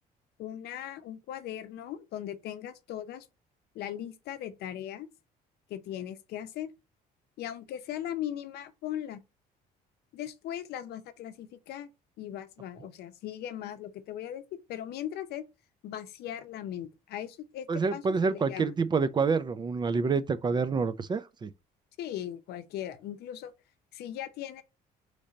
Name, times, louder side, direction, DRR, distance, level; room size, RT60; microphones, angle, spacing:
voice 1, 0.4-3.3 3.7-5.1 5.7-6.7 7.4-9.2 10.1-11.9 12.2-14.4 14.7-15.4 15.8-18.7 22.0-23.5 23.9-24.6, left 11 dB, 75° left, 0.6 m, -38 dB
voice 2, 17.7-21.5, right 5 dB, 25° right, 0.4 m, -27 dB
3.7 x 3.3 x 4.1 m
cardioid pair, 110°, 17 cm